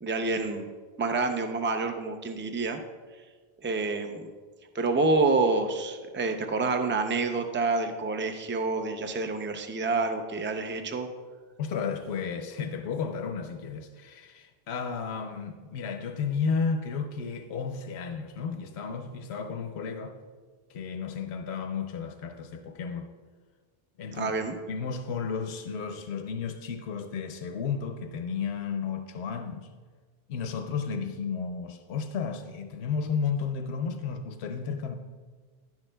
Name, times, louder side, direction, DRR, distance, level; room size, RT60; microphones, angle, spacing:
voice 1, 0.0-0.7 1.0-2.8 3.6-4.3 4.7-11.1 24.1-24.6, right 3 dB, 20° right, 0.4 m, -28 dB
voice 2, 11.6-20.1 20.7-23.1 24.0-24.3 24.7-29.7 30.3-35.0, left 5 dB, 85° left, 0.9 m, -33 dB
11.0 x 10.5 x 2.2 m
omnidirectional pair, 1.1 m